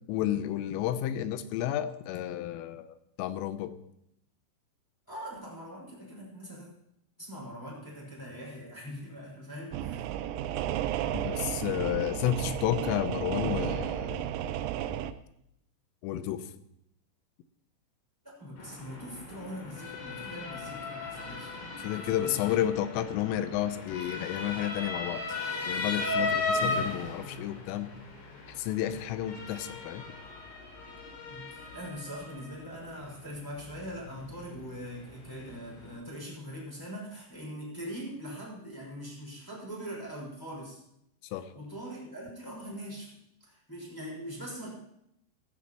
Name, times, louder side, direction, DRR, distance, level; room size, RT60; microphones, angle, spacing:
voice 1, 0.1-3.8 11.1-14.2 16.0-16.5 21.8-25.2 25.7-27.9 28.5-30.0 41.3-41.5, left 11 dB, 85° left, 12 dB, 3.3 m, -31 dB
voice 2, 5.1-6.7 7.2-10.1 10.4-10.5 18.2-22.4 26.1-26.6 31.3-40.8 41.5-43.2 43.4-44.7, equal, 5° left, -5 dB, 5.0 m, -42 dB
sound 1, 9.7-15.1, right 11 dB, 85° right, 3.1 m, -33 dB
Motor vehicle (road) / Siren, 18.6-36.0, left 3 dB, 70° left, 6.2 m, -37 dB
16.0 x 14.5 x 3.0 m, 0.78 s
omnidirectional pair, 5.8 m